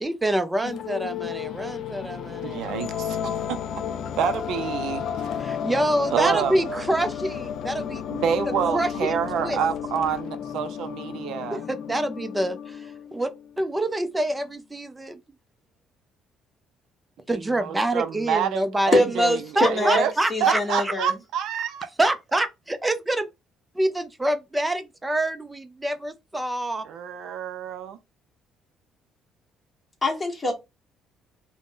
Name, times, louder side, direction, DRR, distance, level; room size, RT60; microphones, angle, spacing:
voice 1, 0.0-2.6 5.4-8.0 8.7-9.6 11.4-13.3 13.6-15.2 17.3-19.1 19.6-20.9 22.0-23.3 23.7-26.8, right 1 dB, 10° right, 0.4 m, -26 dB
sound 1, 0.6-13.5, left 8 dB, 60° left, 0.3 m, -33 dB
voice 2, 2.4-3.6 4.2-5.3 6.1-6.8 8.1-11.6 17.3-20.1 20.4-21.9 26.8-28.0, right 8 dB, 70° right, 0.4 m, -28 dB
voice 3, 18.9-20.0 20.3-21.1 30.0-30.5, left 1 dB, 15° left, 1.1 m, -23 dB
2.5 x 2.0 x 3.5 m
cardioid pair, 130°, 0 cm